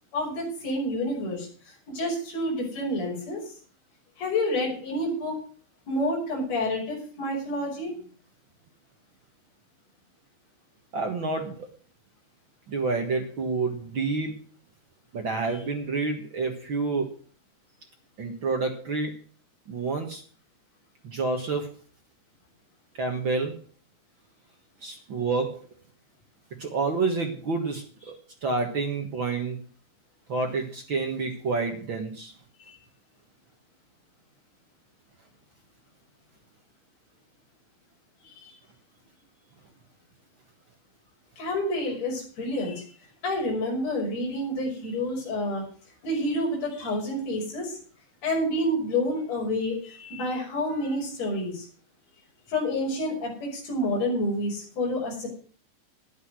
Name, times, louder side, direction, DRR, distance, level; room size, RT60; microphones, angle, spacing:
voice 1, 0.1-3.5 4.2-5.3 5.9-7.9 32.6-32.7 38.4-38.6 41.4-42.8 43.2-45.6 46.0-47.8 48.2-51.7 52.5-55.3, left 1 dB, 40° left, -2 dB, 6.9 m, -29 dB
voice 2, 10.9-11.7 12.7-14.3 15.1-17.1 18.2-19.1 19.7-20.2 21.0-21.7 23.0-23.6 24.8-25.6 26.6-28.1 28.4-29.5 30.3-32.3, right 3 dB, 85° right, 2 dB, 1.0 m, -28 dB
12.5 x 10.0 x 6.2 m, 0.43 s
omnidirectional pair, 5.0 m